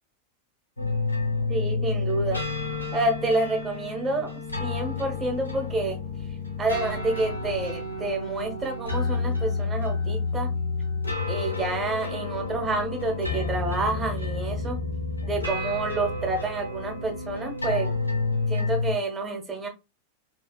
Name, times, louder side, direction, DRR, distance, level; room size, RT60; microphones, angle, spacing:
sound 1, 0.8-18.9, left 3 dB, 85° left, 0.8 m, -30 dB
voice 1, 1.5-2.4 2.9-4.3 4.6-6.0 6.6-10.5 11.3-14.8 15.2-17.9 18.5-19.7, right 2 dB, 20° right, 3 dB, 0.9 m, -28 dB
2.8 x 2.7 x 2.2 m, 0.25 s
figure-of-eight pair, 90°, 0 cm